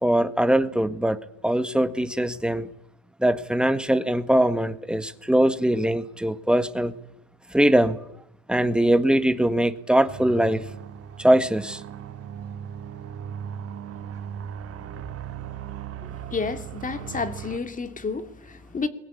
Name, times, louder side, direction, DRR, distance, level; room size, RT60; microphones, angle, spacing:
voice 1, 0.0-1.2 1.4-2.7 3.2-6.9 7.5-8.0 8.5-10.6 11.2-11.8, right 1 dB, 5° right, 1.6 m, -21 dB
sound 1, 10.1-17.6, right 9 dB, 40° right, 2.1 m, -37 dB
voice 2, 16.3-18.9, left 4 dB, 20° left, 2.8 m, -30 dB
29.5 x 22.0 x 8.5 m
supercardioid pair, 115°, 35 cm